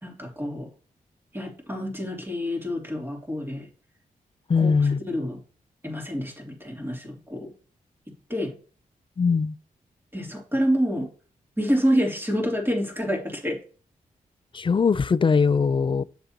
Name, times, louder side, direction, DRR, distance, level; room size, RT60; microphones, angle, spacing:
voice 1, 0.0-0.7 1.3-3.7 4.5-4.7 5.1-5.4 5.8-7.5 8.3-8.5 10.1-11.1 11.6-13.6, equal, 15° right, 3.1 m, -27 dB
voice 2, 4.5-5.0 9.2-9.6 14.5-16.0, left 5 dB, 35° left, 0.4 m, -21 dB
7.9 x 6.8 x 2.9 m
cardioid pair, 55°, 15 cm